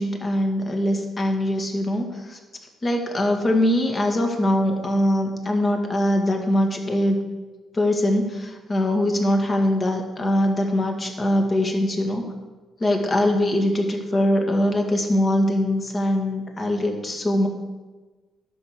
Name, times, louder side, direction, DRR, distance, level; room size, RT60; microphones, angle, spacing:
voice 1, 0.0-2.4 2.8-7.2 7.7-12.2 12.8-17.5, left 1 dB, 30° left, 2 dB, 2.1 m, -22 dB
11.5 x 6.2 x 6.7 m, 1.3 s
cardioid pair, 90°, 0 cm